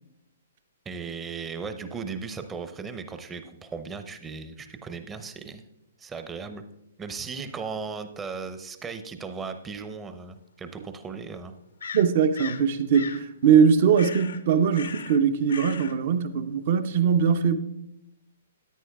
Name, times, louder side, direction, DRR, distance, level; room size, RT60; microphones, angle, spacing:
voice 1, 0.9-5.6 6.0-6.6 7.0-11.5, right 5 dB, 15° right, 0.7 m, -37 dB
sound 1, 9.8-9.9 11.8-12.7 12.9-13.2 13.9-14.4 14.7-15.2 15.5-15.9, left 6 dB, 65° left, 0.6 m, -38 dB
voice 2, 11.9-17.5, right 7 dB, 50° right, 0.7 m, -21 dB
13.5 x 9.6 x 2.3 m
figure-of-eight pair, 120°, 0 cm